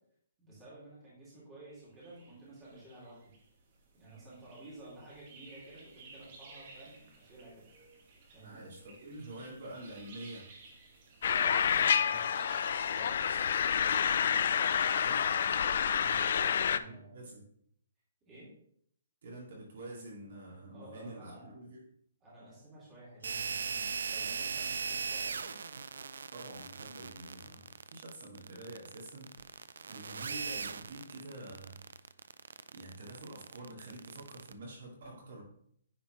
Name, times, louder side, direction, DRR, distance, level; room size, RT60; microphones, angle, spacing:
voice 1, 0.4-3.3 3.9-7.7 8.3-8.6 11.2-13.3 15.9-17.2 18.2-18.5 20.7-21.6 22.2-25.6 35.0-35.1, right 2 dB, 15° right, -8 dB, 2.6 m, -52 dB
sound 1, 1.7-15.4, right 3 dB, 30° right, 1.1 m, -56 dB
voice 2, 8.4-10.5 15.0-15.2 16.8-17.5 19.2-21.8 26.3-29.3 29.9-31.8 32.7-35.4, right 1 dB, 55° right, -2 dB, 2.4 m, -47 dB
sound 2, 11.2-16.8, left 8 dB, 50° left, 0.3 m, -28 dB
sound 3, 23.2-34.5, right 5 dB, 85° right, 0.4 m, -39 dB
9.5 x 4.3 x 3.2 m, 0.66 s
hypercardioid pair, 175°, 0 cm